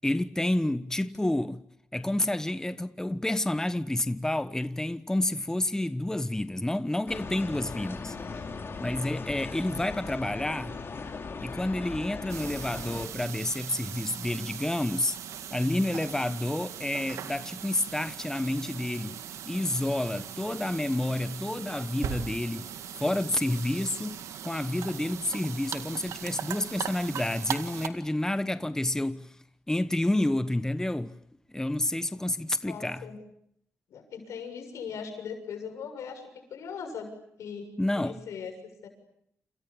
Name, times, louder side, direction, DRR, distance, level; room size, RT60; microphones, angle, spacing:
voice 1, 0.0-1.6 1.9-8.1 8.8-10.8 11.4-15.2 15.5-22.7 23.0-29.4 29.7-31.2 31.5-33.0 37.8-38.2, left 1 dB, 10° left, 1.1 m, -29 dB
sound 1, 7.1-13.1, left 4 dB, 50° left, 4.7 m, -38 dB
sound 2, 12.3-27.9, right 9 dB, 90° right, 1.9 m, -39 dB
voice 2, 32.6-33.2 33.9-37.1 37.4-37.7 38.0-38.5 38.8-38.9, left 6 dB, 85° left, 7.1 m, -39 dB
29.0 x 28.5 x 7.2 m
cardioid pair, 60°, 5 cm